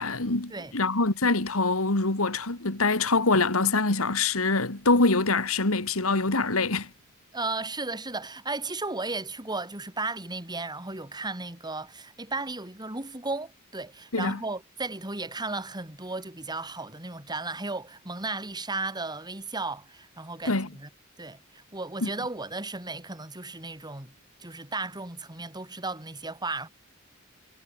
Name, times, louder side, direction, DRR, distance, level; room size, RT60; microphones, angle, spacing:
voice 1, 0.0-6.9 14.1-14.4 20.5-20.7 22.0-22.1, left 3 dB, 80° left, 2.4 m, -24 dB
voice 2, 7.3-20.9 21.2-24.1 24.4-26.7, right 3 dB, 20° right, 3.8 m, -35 dB
head